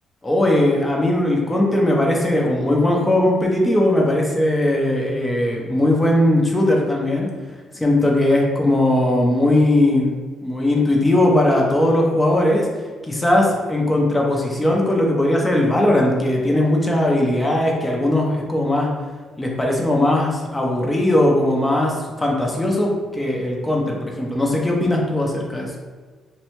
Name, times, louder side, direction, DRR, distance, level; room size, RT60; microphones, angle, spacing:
voice 1, 0.2-7.3 7.7-10.1 10.4-12.7 13.1-18.9 19.4-25.7, left 1 dB, 15° left, -1 dB, 0.6 m, -19 dB
2.6 x 2.1 x 2.9 m, 1.4 s
cardioid pair, 90°, 0 cm